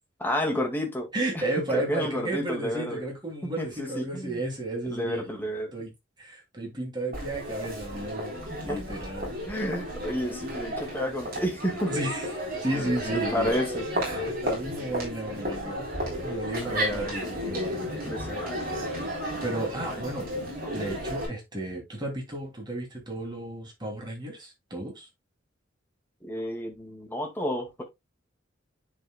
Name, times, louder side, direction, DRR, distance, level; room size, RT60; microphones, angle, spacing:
voice 1, 0.2-1.1 1.3-1.4 1.7-3.0 3.6-4.4 4.8-5.7 8.7-8.8 9.5-12.0 12.7-14.1 16.6-17.2 17.9-18.6 19.2-19.4 19.9-20.0 20.8-20.9 26.2-27.8, equal, 10° left, 2.0 m, -31 dB
voice 2, 1.1-5.2 5.7-5.9 6.2-8.4 8.6-9.4 11.9-12.3 12.6-13.5 14.0-17.9 19.4-20.3 20.7-25.1, right 1 dB, 20° right, 2.8 m, -33 dB
Crowd, 7.1-21.2, equal, 50° right, 3.9 m, -33 dB
10.0 x 4.7 x 2.3 m
head